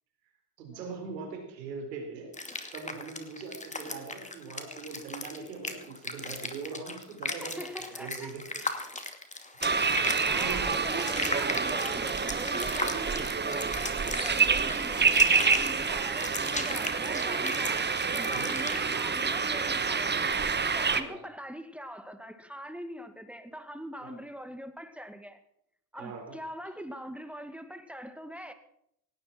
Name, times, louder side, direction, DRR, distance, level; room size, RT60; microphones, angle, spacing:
voice 1, 0.6-2.3 2.7-8.6 9.7-11.3 17.6-17.8 18.3-18.6 20.8-21.2 24.0-24.2 25.9-26.4, right 4 dB, 85° right, 2 dB, 4.6 m, -42 dB
sound 1, 2.3-18.8, left 2 dB, 15° left, 2.5 m, -37 dB
voice 2, 7.4-8.3 8.6-8.8 9.9-20.2 20.7-25.4 25.9-28.5, equal, 5° right, 8 dB, 2.1 m, -43 dB
sound 2, 9.6-21.0, right 5 dB, 20° right, 1.3 m, -28 dB
18.5 x 17.5 x 4.5 m, 0.73 s
hypercardioid pair, 65°, 48 cm